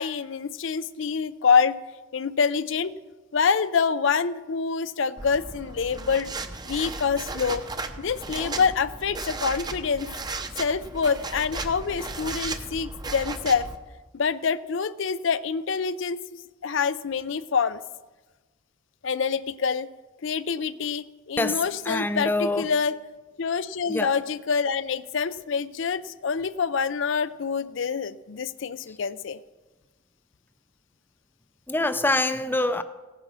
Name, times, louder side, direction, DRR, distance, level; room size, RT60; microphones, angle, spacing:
voice 1, 0.0-1.8 2.1-2.9 3.3-6.3 6.7-7.6 8.0-10.1 10.6-13.7 14.1-16.2 16.6-17.8 19.0-19.9 20.2-23.0 23.4-29.4, left 5 dB, 60° left, 15 dB, 0.5 m, -26 dB
sound 1, 5.2-13.8, right 3 dB, 20° right, 0.7 m, -35 dB
voice 2, 21.9-22.7 23.9-24.1 31.7-32.8, left 2 dB, 10° left, 10 dB, 0.5 m, -25 dB
16.5 x 9.3 x 6.1 m, 1.2 s
head